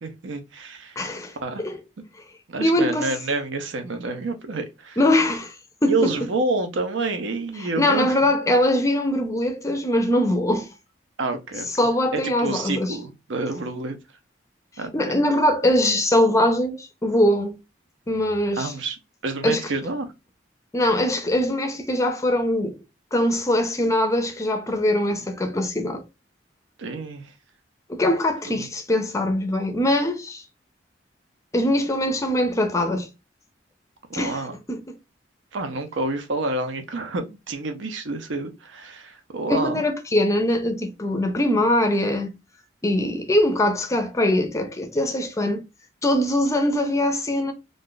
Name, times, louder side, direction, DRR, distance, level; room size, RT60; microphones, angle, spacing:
voice 1, 0.0-1.0 1.4-1.7 2.5-5.0 5.9-8.1 11.2-14.0 14.8-15.1 18.6-19.0 19.2-20.0 26.8-27.3 34.1-34.6 35.5-39.8, right 3 dB, 80° right, 0.6 m, -28 dB
voice 2, 1.0-1.8 2.6-3.1 5.0-5.6 5.8-6.1 7.6-10.7 11.8-13.0 14.9-17.6 18.1-18.7 19.4-19.7 20.7-22.8 23.1-26.0 27.9-30.4 31.5-33.1 34.1-34.4 34.7-35.0 39.5-42.3 42.8-45.6 46.0-47.5, left 1 dB, 15° left, 0.4 m, -22 dB
2.5 x 2.3 x 3.7 m
head